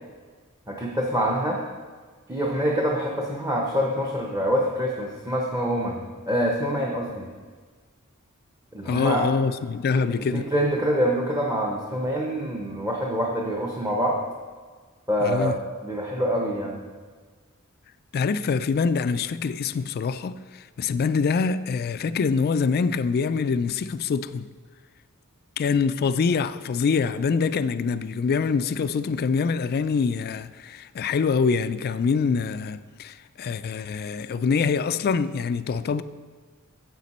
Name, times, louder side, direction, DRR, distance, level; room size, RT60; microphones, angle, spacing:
voice 1, 0.7-1.6 2.3-7.3 8.7-9.3 9.9-10.0 10.5-14.2 15.1-15.6 15.8-16.8, equal, 15° right, 0.8 m, -25 dB
voice 2, 8.9-10.5 15.2-15.5 18.1-24.5 25.6-36.0, left 5 dB, 45° left, 0.3 m, -25 dB
9.2 x 7.5 x 4.2 m
head